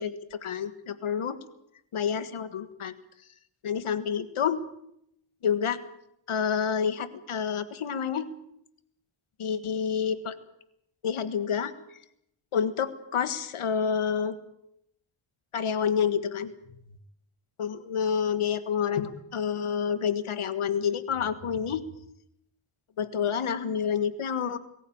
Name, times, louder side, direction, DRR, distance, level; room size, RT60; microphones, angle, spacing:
voice 1, 0.0-1.4 1.9-2.9 3.6-4.6 5.4-5.8 6.3-8.3 9.4-10.3 11.0-11.7 12.5-14.3 15.5-16.5 17.6-21.8 23.0-24.6, left 7 dB, 80° left, 12 dB, 1.7 m, -28 dB
23.5 x 15.0 x 8.7 m, 0.78 s
wide cardioid pair, 90°, 49 cm